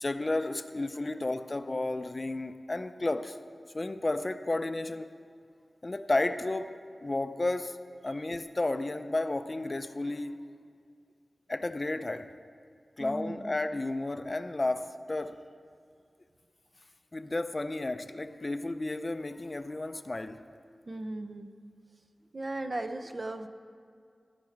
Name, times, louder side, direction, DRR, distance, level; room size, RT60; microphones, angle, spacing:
voice 1, 0.0-3.4 3.7-5.1 5.8-7.8 8.0-10.4 11.5-12.3 13.0-15.4 17.1-20.4, left 2 dB, 40° left, 11 dB, 0.4 m, -32 dB
voice 2, 13.0-13.5 20.9-21.5 22.3-23.5, right 2 dB, 50° right, 7 dB, 0.6 m, -37 dB
17.0 x 5.9 x 4.6 m, 2.3 s
cardioid pair, 45°, 0 cm